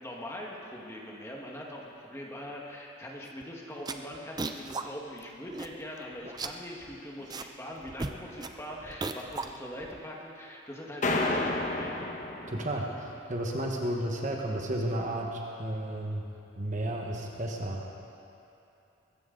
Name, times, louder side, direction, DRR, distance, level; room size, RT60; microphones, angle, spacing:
voice 1, 0.0-12.1, equal, 15° left, -2 dB, 1.6 m, -42 dB
sound 1, 3.3-3.4 3.7-4.8 5.2-5.3 5.5-6.0 6.2-7.5 7.8-10.0, right 3 dB, 20° right, 0.5 m, -37 dB
sound 2, 11.0-13.0, left 2 dB, 35° left, 1.1 m, -30 dB
voice 2, 12.5-16.3 16.6-17.9, right 1 dB, 35° right, 0 dB, 1.3 m, -33 dB
22.0 x 15.0 x 3.9 m, 2.8 s
head